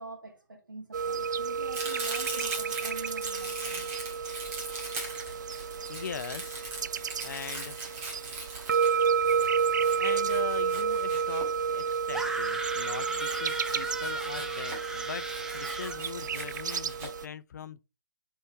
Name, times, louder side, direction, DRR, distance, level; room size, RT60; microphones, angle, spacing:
voice 1, 0.0-3.9, right 2 dB, 80° right, 2.2 m, -45 dB
sound 1, 0.9-17.3, right 6 dB, 65° right, 0.4 m, -31 dB
Domestic sounds home sounds, 1.7-12.0 13.1-14.9 15.2-17.1, right 3 dB, 20° right, 1.9 m, -40 dB
voice 2, 5.9-6.7 7.2-7.8 9.9-15.3 15.5-17.8, left 7 dB, 60° left, 0.5 m, -41 dB
sound 2, 12.1-16.0, right 2 dB, 5° right, 0.5 m, -36 dB
4.6 x 4.4 x 4.7 m
figure-of-eight pair, 135°, 10 cm